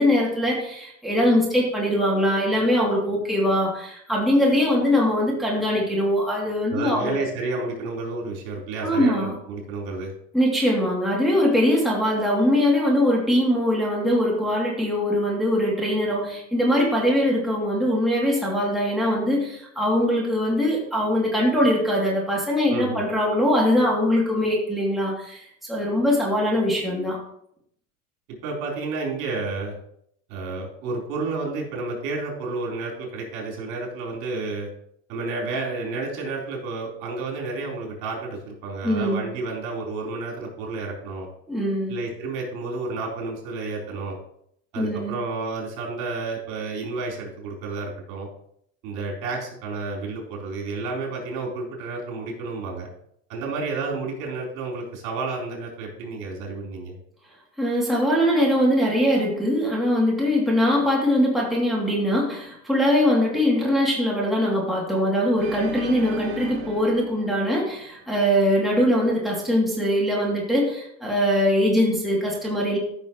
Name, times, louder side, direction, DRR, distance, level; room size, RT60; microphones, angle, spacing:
voice 1, 0.0-7.2 8.8-9.3 10.3-27.2 38.8-39.2 41.5-41.9 44.8-45.2 57.6-72.8, equal, ahead, -4 dB, 2.8 m, -22 dB
voice 2, 6.7-10.1 22.7-23.0 28.3-29.8 30.3-34.7 35.1-41.3 41.9-44.2 44.7-48.3 48.8-52.9 53.3-57.0, right 3 dB, 60° right, -2 dB, 4.1 m, -31 dB
Organ, 65.4-68.5, right 6 dB, 40° right, 1.4 m, -38 dB
13.5 x 6.4 x 3.1 m, 0.70 s
hypercardioid pair, 100°, 41 cm